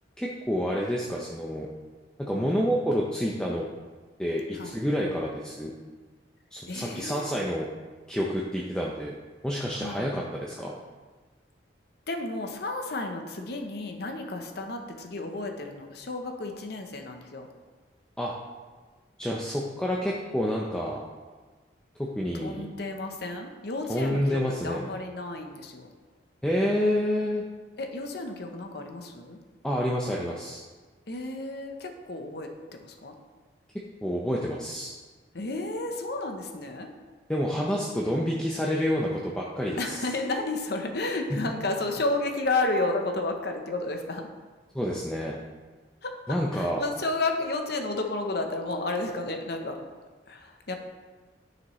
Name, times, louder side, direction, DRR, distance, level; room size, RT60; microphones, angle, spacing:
voice 1, 0.2-1.7 2.2-3.7 4.2-5.7 6.5-7.7 8.1-9.1 9.4-10.7 18.2-18.3 19.2-21.0 22.0-22.6 23.9-24.8 26.4-27.4 29.6-30.6 34.0-34.9 37.3-40.1 41.3-41.4 44.7-45.4 46.3-46.8, equal, 5° left, -3 dB, 0.5 m, -28 dB
voice 2, 6.7-7.4 9.8-10.1 12.1-17.5 22.4-25.9 27.8-29.4 31.1-32.5 32.8-33.1 35.3-36.9 39.8-44.3 46.0-49.8 50.3-50.8, left 2 dB, 55° left, 4 dB, 0.8 m, -32 dB
10.0 x 6.0 x 3.1 m, 1.4 s
head